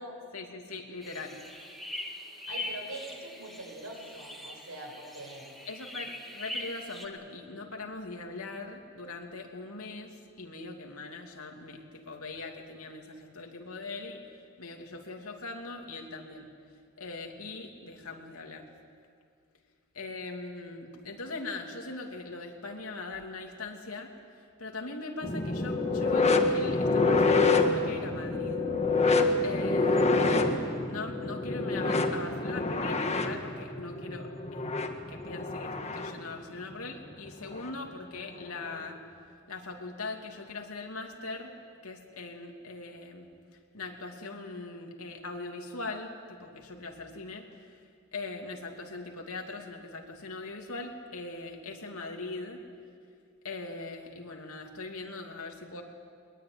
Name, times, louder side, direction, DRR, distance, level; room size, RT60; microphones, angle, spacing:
voice 1, 0.3-1.4 5.7-14.2 14.6-16.5 17.0-18.6 19.9-24.1 24.6-28.7 29.4-30.5 30.8-34.7 35.1-39.0 39.5-41.5 41.8-43.3 43.7-47.4 48.1-52.6 53.4-55.8, left 3 dB, 85° left, 2 dB, 2.8 m, -40 dB
sound 1, 1.0-7.1, left 1 dB, ahead, 2.1 m, -41 dB
voice 2, 2.5-5.5, right 1 dB, 90° right, 2 dB, 6.5 m, -43 dB
sound 2, 25.2-36.2 37.5-37.7 38.6-38.7, left 3 dB, 30° left, 1.7 m, -27 dB
22.0 x 21.5 x 9.6 m, 2.2 s
head